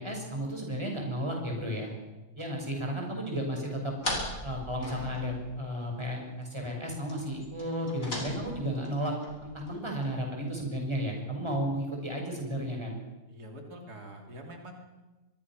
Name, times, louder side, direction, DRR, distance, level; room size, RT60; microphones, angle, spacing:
voice 1, 0.0-1.9 2.4-3.9 4.4-9.1 9.4-13.0, equal, 15° right, 1 dB, 6.3 m, -33 dB
sound 1, 4.0-5.8 6.0-6.1 6.4-6.5 7.0-10.1, left 1 dB, 60° left, 6.0 m, -39 dB
voice 2, 13.3-14.7, right 1 dB, 80° right, 2 dB, 3.3 m, -45 dB
24.5 x 22.0 x 6.2 m, 1.1 s
omnidirectional pair, 1.6 m